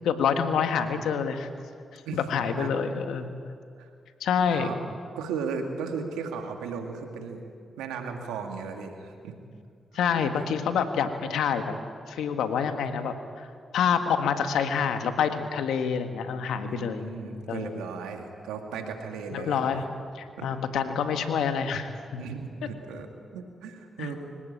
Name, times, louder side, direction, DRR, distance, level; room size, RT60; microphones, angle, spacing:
voice 1, 0.0-1.5 2.1-3.3 4.2-4.7 9.9-11.8 12.1-13.5 13.7-17.0 17.5-17.7 19.3-19.8 20.1-22.2 24.0-24.2, left 7 dB, 80° left, 7 dB, 1.6 m, -27 dB
voice 2, 5.1-7.4 7.8-9.3 16.6-19.6 20.4-20.5 22.2-24.2, right 5 dB, 85° right, 4 dB, 2.1 m, -36 dB
24.5 x 16.5 x 8.8 m, 2.3 s
supercardioid pair, 40°, 0 cm